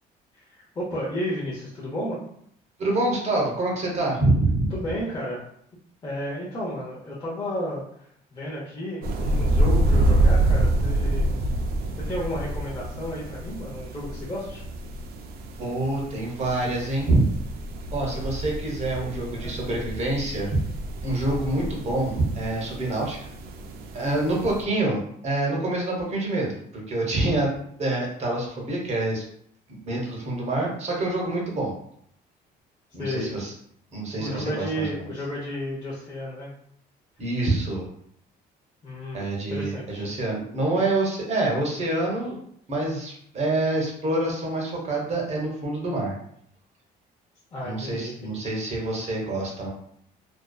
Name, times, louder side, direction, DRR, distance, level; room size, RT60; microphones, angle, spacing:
voice 1, 0.3-2.2 4.7-5.4 6.0-11.3 11.9-14.6 18.9-19.6 33.0-33.3 34.2-36.5 38.8-40.1 47.5-48.5, equal, 25° left, -7 dB, 0.6 m, -33 dB
voice 2, 2.8-4.7 15.6-17.3 17.9-20.6 21.0-23.3 23.9-27.5 27.8-29.2 29.7-31.7 32.9-33.5 33.9-35.0 37.2-37.9 39.1-42.4 42.7-46.1 47.6-49.7, right 2 dB, 40° right, -2 dB, 0.8 m, -26 dB
sound 1, 9.0-24.6, right 1 dB, 65° right, 0.4 m, -27 dB
2.5 x 2.2 x 2.2 m, 0.68 s
cardioid pair, 110°, 17 cm